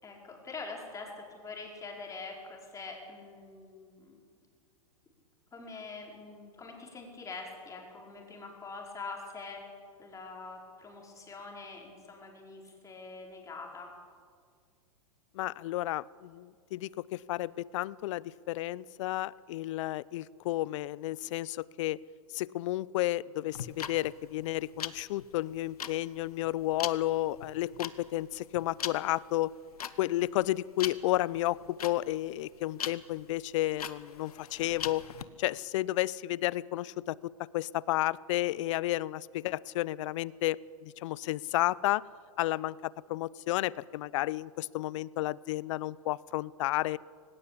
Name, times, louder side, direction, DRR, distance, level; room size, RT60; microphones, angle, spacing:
voice 1, 0.0-4.2 5.5-9.6 10.0-13.9, left 4 dB, 15° left, 0 dB, 4.8 m, -44 dB
voice 2, 15.3-22.0 22.3-29.5 30.0-35.0 35.4-42.0 42.4-47.0, left 16 dB, 55° left, 23 dB, 0.6 m, -32 dB
sound 1, 23.5-35.2, left 8 dB, 85° left, 1.1 m, -41 dB
18.5 x 18.0 x 8.5 m, 2.1 s
hypercardioid pair, 120°, 19 cm